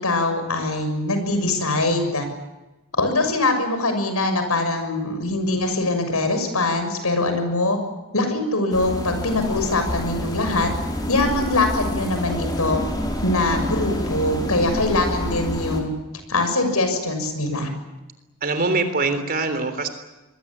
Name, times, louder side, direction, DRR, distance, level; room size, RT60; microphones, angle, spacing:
voice 1, 0.0-2.3 3.0-7.8 8.1-10.7 11.1-12.8 13.2-15.9 16.3-17.7, left 2 dB, 85° left, 7 dB, 6.6 m, -22 dB
sound 1, 8.7-15.8, equal, 20° left, 4.8 m, -28 dB
voice 2, 18.4-19.9, right 3 dB, 40° right, 9 dB, 3.5 m, -23 dB
26.5 x 21.5 x 8.7 m, 1.1 s
head